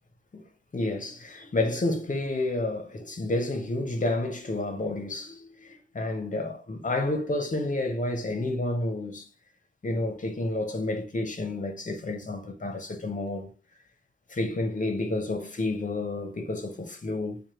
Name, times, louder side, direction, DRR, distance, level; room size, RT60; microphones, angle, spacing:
voice 1, 0.7-9.2 9.8-13.5 14.3-17.4, left 2 dB, 40° left, 0.8 m, -30 dB
4.3 x 2.3 x 3.2 m
wide cardioid pair, 75°, 21 cm